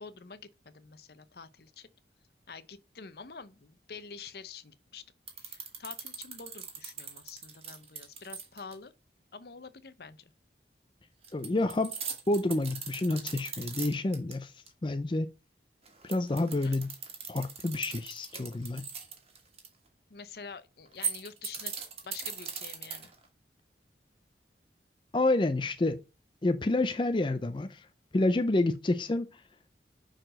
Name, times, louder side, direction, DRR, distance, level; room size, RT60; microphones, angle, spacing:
voice 1, 0.0-1.9 2.5-5.0 5.4-8.9 9.3-10.3 16.6-16.7 20.1-21.7 22.0-23.1, left 5 dB, 60° left, 0.7 m, -47 dB
sound 1, 5.3-8.7 11.2-14.3 14.7-14.8 15.9-19.7 20.9-23.3, right 7 dB, 35° right, 1.7 m, -39 dB
voice 2, 11.3-11.9 12.3-15.3 16.0-16.9 17.3-18.8 25.1-26.0 26.4-27.9 28.1-29.4, left 2 dB, 25° left, 0.4 m, -29 dB
5.9 x 4.6 x 6.3 m
head